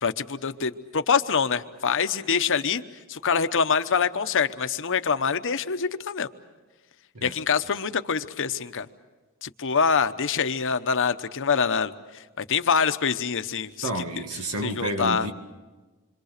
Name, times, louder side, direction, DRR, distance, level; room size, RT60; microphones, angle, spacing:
voice 1, 0.0-2.8 3.1-6.3 7.2-8.9 9.4-13.9 14.6-15.3, left 6 dB, 60° left, 10 dB, 1.0 m, -25 dB
voice 2, 13.8-15.3, right 1 dB, 85° right, 5 dB, 2.1 m, -30 dB
27.0 x 25.0 x 6.7 m, 1.2 s
head